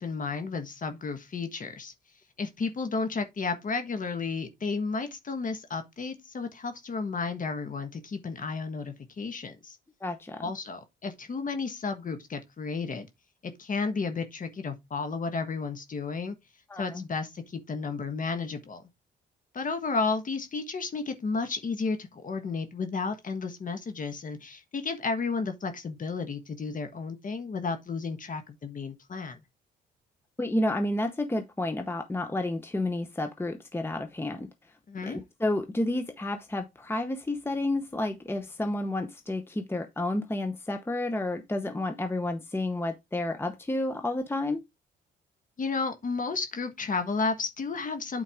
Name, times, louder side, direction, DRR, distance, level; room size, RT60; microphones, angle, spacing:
voice 1, 0.0-1.9 2.4-9.8 10.4-13.1 13.4-16.3 16.8-18.8 19.5-29.4 34.9-35.2 45.6-48.2, left 4 dB, 40° left, 1.4 m, -32 dB
voice 2, 10.0-10.4 16.7-17.0 30.4-34.5 35.0-44.6, left 1 dB, 10° left, 0.9 m, -30 dB
8.7 x 4.6 x 3.6 m
cardioid pair, 90°, 20 cm